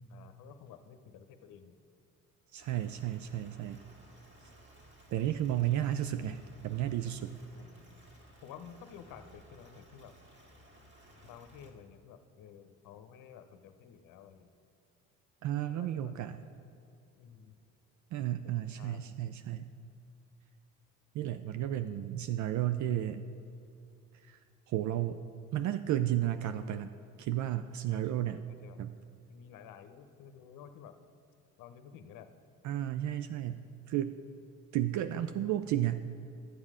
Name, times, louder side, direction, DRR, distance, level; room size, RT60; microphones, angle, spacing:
voice 1, 0.1-1.8 5.9-6.1 7.5-8.0 8.4-10.1 11.2-14.5 15.7-16.1 17.2-17.6 18.4-19.2 27.9-28.8 29.3-30.9 31.6-32.3, left 8 dB, 60° left, 9 dB, 0.9 m, -52 dB
voice 2, 2.5-3.8 5.1-7.3 15.4-16.4 18.1-19.7 21.1-23.2 24.2-24.4 24.7-25.2 25.5-26.9 27.2-28.4 28.8-28.9 32.6-34.1 34.7-36.0, right 12 dB, 55° right, 10 dB, 0.5 m, -33 dB
sound 1, 2.6-11.7, right 1 dB, 30° right, 2.2 m, -58 dB
12.0 x 7.3 x 4.9 m, 2.7 s
supercardioid pair, 70°, 36 cm